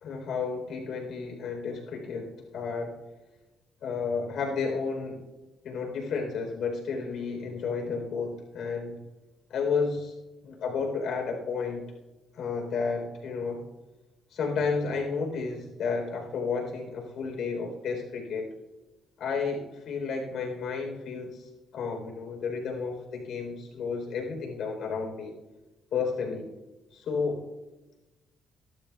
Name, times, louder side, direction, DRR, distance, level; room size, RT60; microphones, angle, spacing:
voice 1, 0.0-2.9 3.8-5.2 5.6-9.0 9.5-10.1 10.4-11.8 12.3-13.6 14.3-18.5 19.2-25.3 25.9-26.5 26.9-27.4, left 5 dB, 75° left, 2 dB, 3.8 m, -32 dB
24.0 x 12.5 x 2.4 m, 1.1 s
cardioid pair, 90°, 0 cm